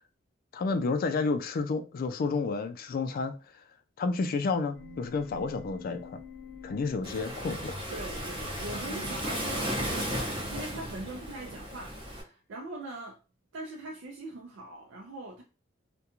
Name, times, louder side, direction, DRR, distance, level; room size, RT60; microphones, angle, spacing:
voice 1, 0.5-3.3 4.0-6.2 6.6-7.8, left 4 dB, 50° left, 0.3 m, -30 dB
sound 1, 4.7-11.2, left 1 dB, 80° left, 0.7 m, -46 dB
Waves surf, 7.0-12.2, equal, 25° right, 0.8 m, -35 dB
voice 2, 7.9-13.2 13.5-15.4, right 2 dB, 80° right, 0.4 m, -41 dB
2.4 x 2.2 x 2.9 m
head